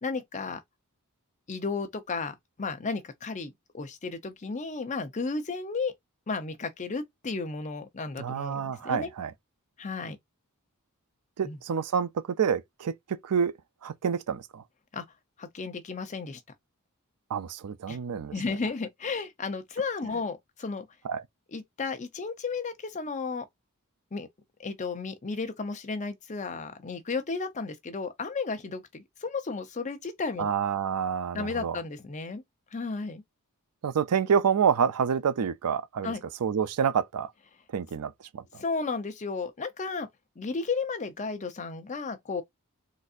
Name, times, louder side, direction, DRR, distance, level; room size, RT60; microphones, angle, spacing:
voice 1, 0.0-0.6 1.5-5.9 6.3-9.1 9.8-10.2 11.4-11.6 14.9-15.0 15.4-16.4 17.9-18.0 18.3-20.9 21.5-23.5 24.1-24.3 24.6-30.5 31.3-32.4 32.7-33.2 36.0-36.2 38.5-40.1 40.4-42.4, left 4 dB, 35° left, 0.6 m, -33 dB
voice 2, 8.2-9.3 11.4-12.1 12.4-13.5 13.8-14.6 17.3-18.3 21.0-21.2 30.4-31.8 33.8-36.1 36.4-37.3 37.7-38.4, right 7 dB, 90° right, 0.4 m, -28 dB
3.9 x 2.6 x 2.5 m
head